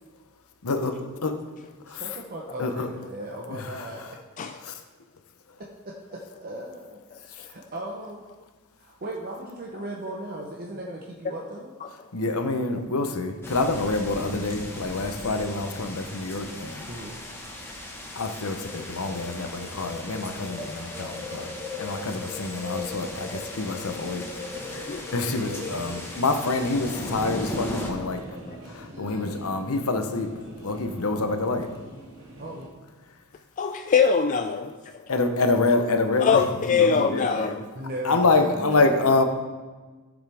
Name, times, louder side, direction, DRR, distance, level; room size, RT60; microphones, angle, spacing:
voice 1, 0.6-1.4 1.9-2.1 2.6-2.9 3.5-4.1 4.6-4.8 7.3-7.5 12.1-16.8 18.2-24.3 24.5-28.2 28.6-30.3 30.6-31.7 35.1-37.5 38.0-39.2, left 3 dB, 65° left, 7 dB, 0.9 m, -27 dB
voice 2, 1.9-4.2 5.6-8.2 8.8-11.7 16.8-17.2 25.3-25.6 32.4-32.7 36.8-39.1, right 1 dB, 45° right, -1 dB, 0.9 m, -37 dB
sound 1, 13.4-27.9, left 2 dB, 10° left, 1.3 m, -37 dB
sound 2, 24.5-32.7, right 1 dB, 65° right, 2.0 m, -44 dB
voice 3, 33.6-35.0 36.2-37.6, left 6 dB, 35° left, 7 dB, 0.3 m, -23 dB
14.0 x 7.2 x 3.5 m, 1.3 s
head